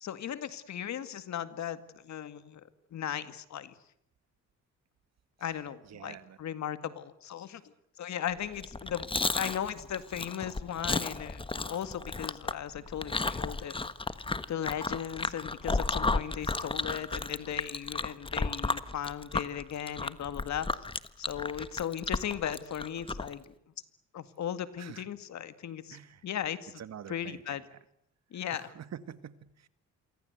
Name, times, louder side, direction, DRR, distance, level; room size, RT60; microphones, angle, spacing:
voice 1, 0.0-2.6 2.9-3.7 5.4-7.6 8.0-13.9 14.5-20.7 21.2-23.5 24.1-26.8 27.1-27.6 28.3-28.7, left 10 dB, 65° left, 12 dB, 2.1 m, -37 dB
voice 2, 5.9-6.4 24.8-25.1 25.9-26.2 26.8-27.8 28.5-29.7, right 9 dB, 60° right, 13 dB, 1.9 m, -46 dB
Chewing mastication, 8.5-23.3, left 3 dB, 15° left, 1.3 m, -33 dB
27.5 x 24.5 x 8.1 m, 0.71 s
cardioid pair, 90°, 30 cm